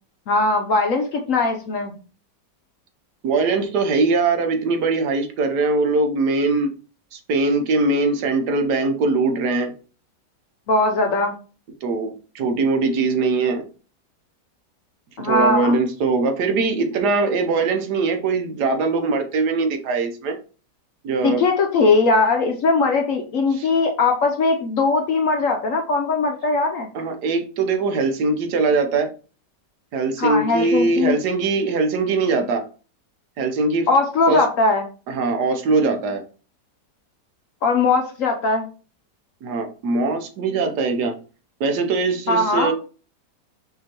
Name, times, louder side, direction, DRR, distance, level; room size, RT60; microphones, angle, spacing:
voice 1, 0.3-1.9 10.7-11.3 15.2-15.8 21.2-26.9 30.2-31.2 33.9-34.8 37.6-38.7 42.3-42.7, left 3 dB, 65° left, 3 dB, 0.9 m, -20 dB
voice 2, 3.2-6.7 7.1-9.7 11.8-13.6 15.2-20.4 21.0-21.4 23.5-23.7 26.9-29.1 29.9-32.6 33.4-33.9 34.3-34.4 35.1-36.2 39.4-41.1 41.6-42.7, right 3 dB, 70° right, 5 dB, 1.3 m, -21 dB
5.6 x 2.9 x 2.9 m, 0.36 s
omnidirectional pair, 1.8 m